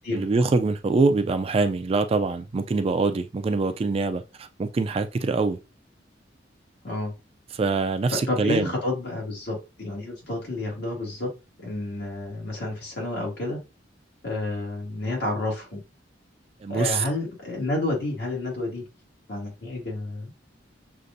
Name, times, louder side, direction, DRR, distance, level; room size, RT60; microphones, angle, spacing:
voice 1, 0.1-5.6 7.5-8.7 16.6-17.0, right 3 dB, 30° right, 0.3 m, -24 dB
voice 2, 8.3-11.3 11.6-13.6 14.2-15.8 16.7-18.8 19.3-20.5, left 2 dB, 65° left, 2.0 m, -30 dB
6.4 x 2.5 x 2.6 m
head